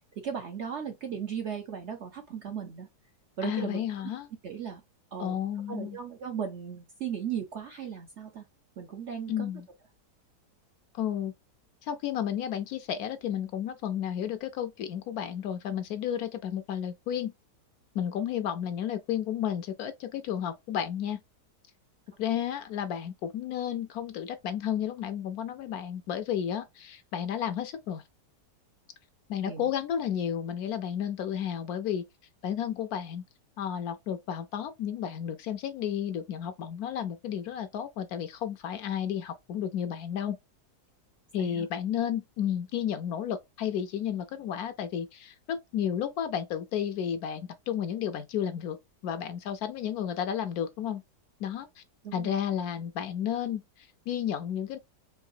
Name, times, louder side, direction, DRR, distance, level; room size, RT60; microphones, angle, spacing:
voice 1, 0.2-2.9 3.4-3.8 4.4-4.8 5.1-5.4 5.7-8.4 8.8-9.5 29.4-29.7 41.4-41.7 52.0-52.4, right 7 dB, 65° right, 0.7 m, -36 dB
voice 2, 3.4-4.3 5.2-6.0 9.3-9.7 10.9-11.3 11.8-17.3 17.9-21.2 22.2-28.0 29.3-32.0 32.4-33.2 33.6-40.4 41.3-48.8 49.0-51.0 51.4-51.8 52.1-54.8, left 9 dB, 70° left, 1.0 m, -32 dB
4.7 x 2.6 x 2.6 m
omnidirectional pair, 1.8 m